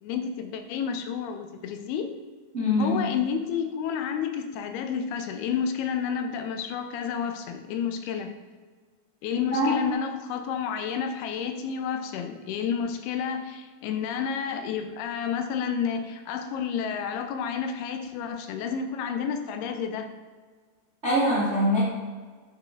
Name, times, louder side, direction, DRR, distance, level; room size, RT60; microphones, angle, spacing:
voice 1, 0.0-2.1 2.8-8.3 9.2-20.1, left 7 dB, 85° left, 6 dB, 2.6 m, -30 dB
voice 2, 2.5-3.0 9.5-9.8 21.0-21.8, left 1 dB, 45° right, -7 dB, 0.8 m, -23 dB
9.2 x 5.7 x 3.8 m, 1.5 s
omnidirectional pair, 4.6 m